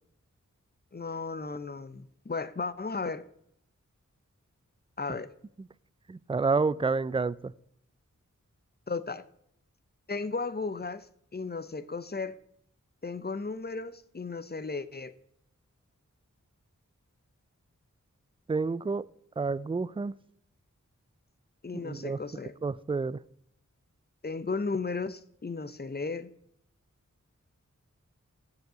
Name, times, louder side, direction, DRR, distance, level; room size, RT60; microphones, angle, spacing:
voice 1, 0.9-3.2 5.0-5.3 8.9-9.2 10.1-11.1 11.3-12.4 13.0-15.1 21.6-22.5 24.2-26.3, left 4 dB, 30° left, 0.6 m, -35 dB
voice 2, 6.1-7.5 18.5-19.0 19.4-20.1 21.8-22.2 22.6-23.2, right 4 dB, 20° right, 0.3 m, -29 dB
7.0 x 6.6 x 6.1 m
wide cardioid pair, 40°, 31 cm